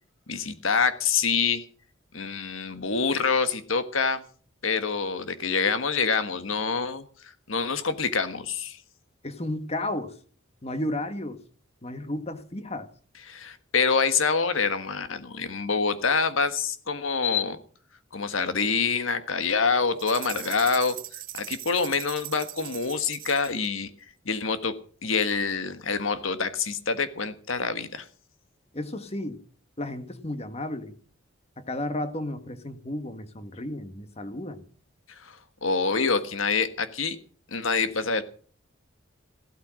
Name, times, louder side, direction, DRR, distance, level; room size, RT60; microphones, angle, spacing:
voice 1, 0.3-1.6 2.1-4.2 4.6-7.1 7.5-8.8 13.3-17.6 18.1-21.0 21.3-23.9 24.2-24.7 25.0-28.0 35.1-37.2 37.5-38.2, left 5 dB, 75° left, 1.5 m, -26 dB
voice 2, 9.2-10.2 10.6-11.4 11.8-12.9 28.7-29.4 29.8-30.9 31.6-34.7, left 1 dB, 30° left, 1.5 m, -33 dB
sound 1, 20.0-23.7, right 13 dB, 45° right, 1.2 m, -40 dB
15.5 x 13.0 x 6.3 m
head